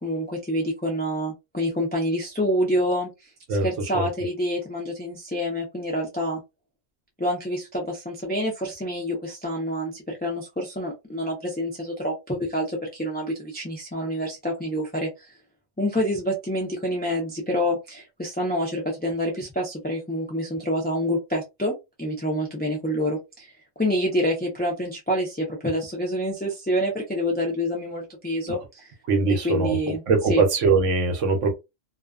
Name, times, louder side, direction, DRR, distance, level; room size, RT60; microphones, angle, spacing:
voice 1, 0.0-3.1 3.6-6.4 7.2-15.3 15.8-21.7 22.0-23.5 23.8-28.9 29.4-30.0 30.3-30.4, equal, 15° left, 0.3 m, -27 dB
voice 2, 29.1-31.5, right 4 dB, 75° right, 1.0 m, -22 dB
2.4 x 2.3 x 2.3 m
omnidirectional pair, 1.3 m